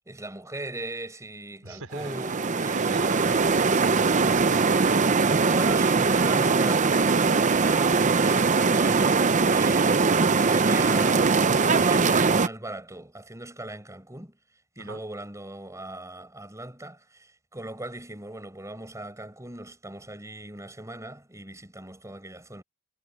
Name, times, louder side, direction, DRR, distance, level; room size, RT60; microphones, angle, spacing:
voice 1, 0.1-4.0 5.4-14.4 14.8-22.6, right 1 dB, 15° right, 7.6 m, -39 dB
voice 2, 1.6-4.8 14.8-15.0, right 3 dB, 90° right, 5.1 m, -41 dB
sound 1, 1.9-12.5, right 4 dB, 35° right, 0.7 m, -21 dB
head